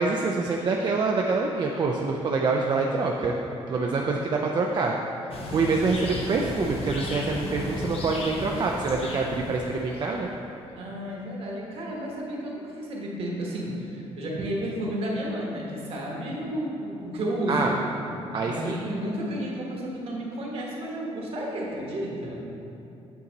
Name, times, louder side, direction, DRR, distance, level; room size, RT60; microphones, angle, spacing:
voice 1, 0.0-3.4 3.7-4.9 5.5-10.3 17.5-17.7 18.3-18.8, right 4 dB, 40° right, 0 dB, 0.4 m, -26 dB
sound 1, 5.3-10.2, left 1 dB, 60° left, 0.9 m, -35 dB
voice 2, 10.8-17.7 18.5-22.5, equal, 60° right, -2 dB, 1.3 m, -32 dB
8.5 x 4.0 x 4.0 m, 2.8 s
cardioid pair, 125°, 11 cm